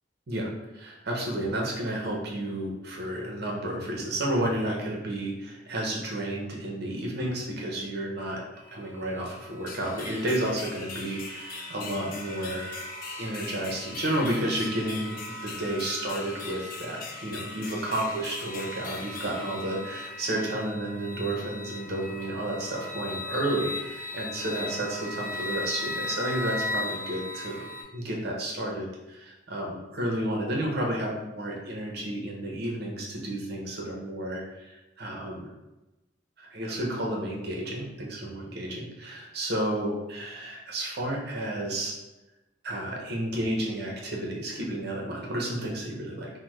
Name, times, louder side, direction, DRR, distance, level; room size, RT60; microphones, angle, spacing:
voice 1, 0.3-8.4 8.7-12.6 13.2-35.5 36.4-42.0 42.6-46.3, right 1 dB, 55° right, -1 dB, 0.7 m, -31 dB
sound 1, 8.5-27.8, left 2 dB, 10° right, 0.7 m, -39 dB
sound 2, 9.7-20.4, left 4 dB, 45° left, 0.3 m, -42 dB
3.3 x 2.0 x 3.0 m, 1.0 s
head